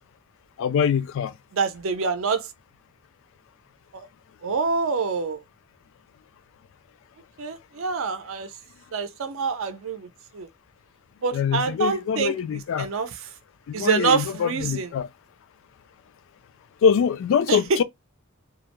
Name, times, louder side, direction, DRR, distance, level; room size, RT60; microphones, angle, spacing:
voice 1, 0.6-1.3 11.3-12.9 13.7-15.1 16.8-17.8, left 7 dB, 65° left, 0.3 m, -23 dB
voice 2, 1.5-2.5 3.9-4.1 4.4-5.4 7.4-8.5 8.9-10.5 11.2-13.1 13.7-14.9 17.5-17.8, right 5 dB, 70° right, 0.5 m, -26 dB
2.3 x 2.0 x 2.9 m
head